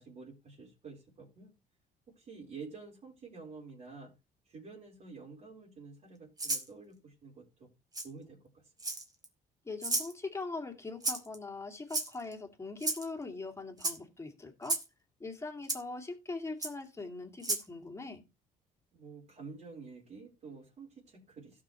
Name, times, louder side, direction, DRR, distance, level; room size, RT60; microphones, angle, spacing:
voice 1, 0.0-1.5 2.2-4.1 4.4-7.7 8.0-8.7 18.9-21.6, right 4 dB, 45° right, 4.1 m, -49 dB
Rattle (instrument), 6.4-6.7 7.9-8.1 8.8-9.2 9.8-10.1 11.0-11.4 11.9-12.3 12.8-13.1 13.8-14.0 14.6-14.9 15.7-15.8 16.6-16.7 17.4-17.7, right 2 dB, 20° right, 2.2 m, -33 dB
voice 2, 9.6-14.8 15.2-18.2, left 3 dB, 15° left, 2.3 m, -41 dB
16.5 x 6.3 x 3.0 m
cardioid pair, 110°, 17 cm